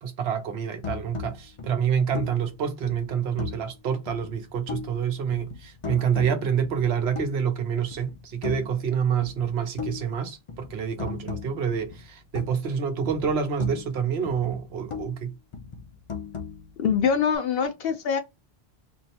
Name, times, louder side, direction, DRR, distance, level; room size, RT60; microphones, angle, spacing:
voice 1, 0.0-15.3, right 7 dB, 80° right, 1.0 m, -27 dB
sound 1, 0.8-3.7 4.1-5.1 5.3-7.6 7.9-8.9 9.2-12.8 13.0-15.2 15.5-17.4, left 6 dB, 40° left, 0.5 m, -38 dB
voice 2, 16.8-18.2, left 7 dB, 70° left, 0.8 m, -24 dB
4.3 x 2.1 x 2.7 m
omnidirectional pair, 1.0 m